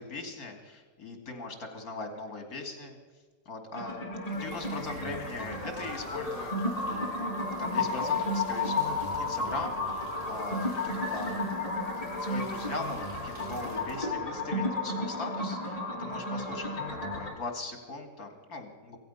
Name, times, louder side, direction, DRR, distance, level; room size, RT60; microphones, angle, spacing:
voice 1, 0.0-3.0 3.5-4.0 4.3-7.3 7.6-10.7 10.9-11.4 12.2-19.0, left 2 dB, 70° left, 5 dB, 2.8 m, -40 dB
sound 1, 3.7-17.3, left 2 dB, 25° left, 2.5 m, -33 dB
sound 2, 4.2-14.2, equal, 20° right, 5.8 m, -48 dB
16.5 x 15.5 x 5.5 m, 1.4 s
omnidirectional pair, 1.6 m